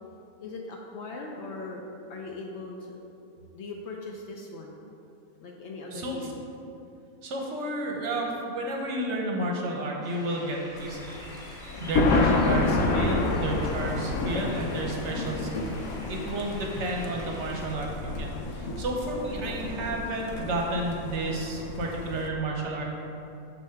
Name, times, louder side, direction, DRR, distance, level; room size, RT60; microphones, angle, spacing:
voice 1, 0.4-1.8 2.1-3.0 3.5-4.8 5.4-6.5 16.5-16.7, left 3 dB, 65° left, 0 dB, 0.7 m, -39 dB
voice 2, 7.2-11.0 11.8-15.7 16.1-22.8, right 1 dB, 60° right, 0 dB, 0.9 m, -31 dB
sound 1, 10.0-17.7, equal, 5° right, 0.6 m, -47 dB
Thunder, 10.8-22.3, left 3 dB, 85° left, 1.0 m, -29 dB
6.2 x 2.8 x 5.6 m, 2.7 s
omnidirectional pair, 1.5 m